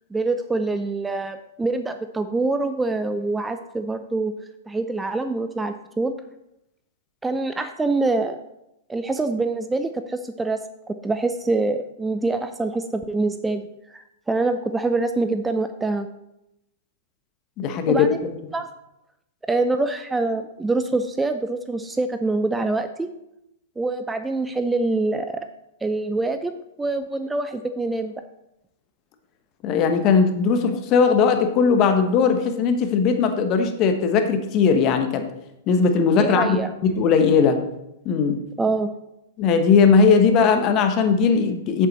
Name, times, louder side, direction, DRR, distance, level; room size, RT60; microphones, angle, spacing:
voice 1, 0.1-4.3 4.7-6.2 7.2-8.4 8.9-10.6 10.9-16.1 17.9-18.3 18.5-18.7 19.5-23.1 23.8-25.5 25.8-28.1 36.1-36.7 38.6-38.9, right 3 dB, 10° right, 9 dB, 0.5 m, -25 dB
voice 2, 17.6-18.1 29.6-35.3 35.7-36.6 36.8-37.6 38.0-38.4 39.4-41.9, left 5 dB, 40° left, 7 dB, 1.1 m, -18 dB
8.0 x 7.5 x 4.1 m, 0.86 s
hypercardioid pair, 105°, 0 cm